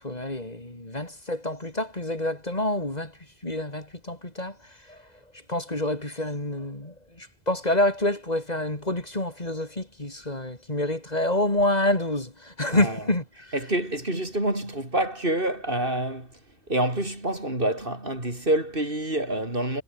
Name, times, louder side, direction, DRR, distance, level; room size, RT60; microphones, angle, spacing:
voice 1, 0.0-5.1 5.5-13.6, left 1 dB, 40° left, 3.7 m, -28 dB
voice 2, 13.5-16.3 16.7-19.8, right 1 dB, 55° right, 6.2 m, -27 dB
omnidirectional pair, 1.1 m